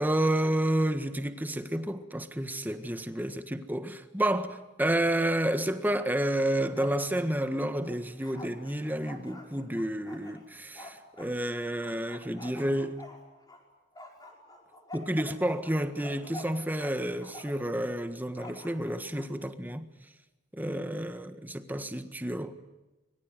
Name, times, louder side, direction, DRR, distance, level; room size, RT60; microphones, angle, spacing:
voice 1, 0.0-13.0 14.9-19.9 20.5-22.5, right 1 dB, 10° right, 1.6 m, -30 dB
Bark, 6.4-7.0 7.3-11.3 11.8-13.6 13.9-16.9 17.2-17.7 18.3-19.3, left 1 dB, 20° left, 5.5 m, -47 dB
26.0 x 23.0 x 9.3 m
head